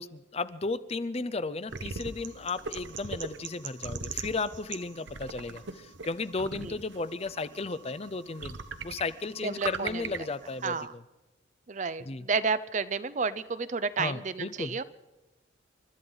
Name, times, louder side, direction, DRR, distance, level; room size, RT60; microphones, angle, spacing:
voice 1, 0.0-8.6 8.8-11.0 12.0-12.3 14.0-14.8, left 3 dB, 30° left, 14 dB, 0.5 m, -34 dB
sound 1, 1.7-10.8, right 5 dB, 70° right, 1.0 m, -41 dB
voice 2, 9.4-10.0 10.6-10.9 11.7-14.8, right 5 dB, 40° right, 14 dB, 0.6 m, -31 dB
29.0 x 13.0 x 3.9 m, 1.1 s
head